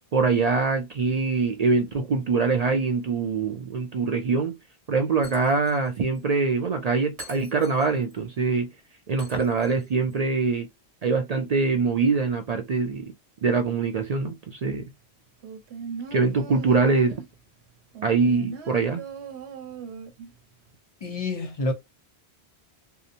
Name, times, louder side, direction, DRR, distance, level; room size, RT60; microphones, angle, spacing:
voice 1, 0.1-4.6 4.9-8.7 9.1-10.7 11.0-13.1 13.4-14.9 16.1-17.2 18.0-19.0, right 4 dB, 55° right, 0.4 m, -24 dB
Shatter, 5.2-5.9 6.1-6.2 7.2-8.2 9.2-10.2, equal, 35° right, 1.1 m, -47 dB
sound 1, 15.4-17.4 17.9-20.3 20.7-20.8, right 6 dB, 85° right, 0.9 m, -38 dB
voice 2, 21.0-21.7, left 2 dB, 40° left, 0.8 m, -28 dB
2.7 x 2.0 x 2.5 m
omnidirectional pair, 1.1 m